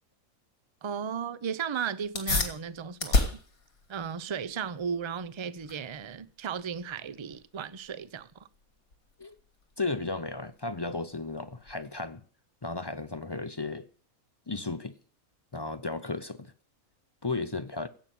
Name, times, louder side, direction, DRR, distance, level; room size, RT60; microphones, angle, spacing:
voice 1, 0.8-3.4 3.9-8.5, right 7 dB, 35° right, 0.5 m, -35 dB
sound 1, 2.0-12.1, left 3 dB, 85° left, 2.8 m, -35 dB
voice 2, 9.8-12.2 12.6-13.9 14.5-15.0 15.5-16.5 17.2-17.9, left 3 dB, 25° left, 0.5 m, -34 dB
16.5 x 5.9 x 9.3 m
omnidirectional pair, 1.5 m